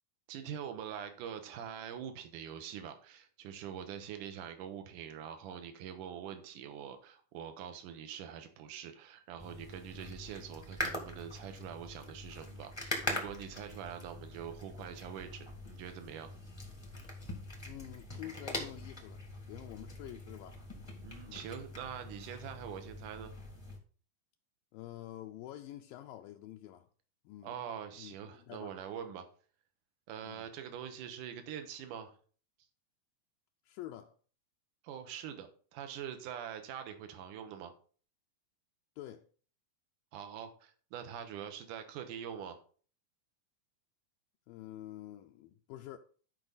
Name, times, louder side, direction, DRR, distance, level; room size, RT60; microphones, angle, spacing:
voice 1, 0.3-16.3 21.0-23.3 27.4-29.3 30.1-32.2 34.8-37.7 40.1-42.6, right 9 dB, 70° right, 2.6 m, -44 dB
sound 1, 9.4-23.8, left 1 dB, 15° left, 0.8 m, -43 dB
voice 2, 17.7-20.6 21.3-21.4 24.7-26.9 27.3-27.6 28.0-28.7 30.2-30.5 33.7-34.2 39.0-39.2 44.5-46.0, left 13 dB, 80° left, 2.3 m, -48 dB
12.5 x 5.4 x 4.0 m
omnidirectional pair, 4.1 m